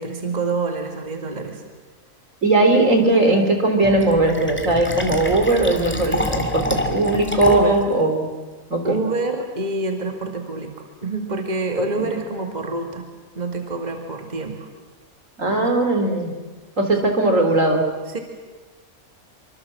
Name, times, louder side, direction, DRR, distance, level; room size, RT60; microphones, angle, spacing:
voice 1, 0.0-1.6 7.5-7.8 8.8-13.1 13.4-14.7 15.5-15.7 16.9-17.0 18.1-18.2, right 3 dB, 30° right, 3 dB, 2.2 m, -27 dB
voice 2, 2.4-8.3 8.7-9.0 11.8-12.1 15.4-16.3 16.8-17.8, right 2 dB, 60° right, 4 dB, 3.8 m, -19 dB
Fill (with liquid), 3.8-7.8, left 1 dB, 10° left, 2.3 m, -27 dB
25.5 x 25.0 x 7.6 m, 1.3 s
omnidirectional pair, 1.5 m